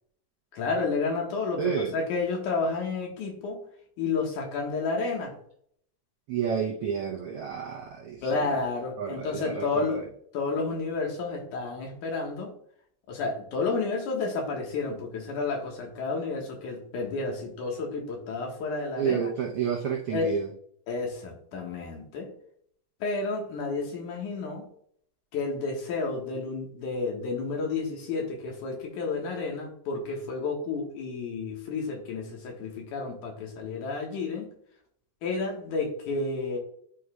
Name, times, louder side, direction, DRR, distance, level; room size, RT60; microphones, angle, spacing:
voice 1, 0.5-1.6 1.9-3.6 4.0-5.4 8.2-10.0 10.3-12.5 13.1-19.3 20.1-20.3 20.9-22.3 23.0-24.7 25.3-34.5 35.2-36.6, left 4 dB, 80° left, 1 dB, 2.8 m, -31 dB
voice 2, 1.6-2.0 6.3-8.3 9.0-10.0 19.0-20.5, right 7 dB, 85° right, 0 dB, 1.2 m, -30 dB
10.5 x 4.9 x 2.3 m, 0.66 s
omnidirectional pair, 3.5 m